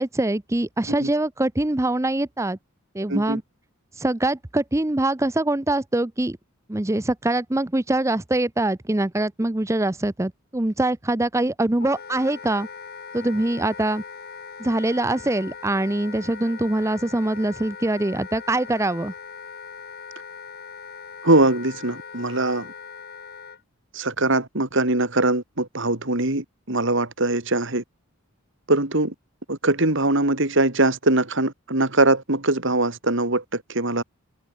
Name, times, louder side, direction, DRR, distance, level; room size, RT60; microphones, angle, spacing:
voice 1, 0.0-2.6 2.9-3.4 4.0-6.4 6.7-12.7 13.1-14.0 14.6-19.1, right 1 dB, 15° right, 0.6 m, -23 dB
voice 2, 3.1-3.4 21.2-22.7 23.9-27.8 28.7-29.1 29.5-34.0, right 2 dB, 55° right, 2.9 m, -22 dB
Wind instrument woodwind instrument, 11.8-23.6, left 6 dB, 45° left, 2.4 m, -40 dB
head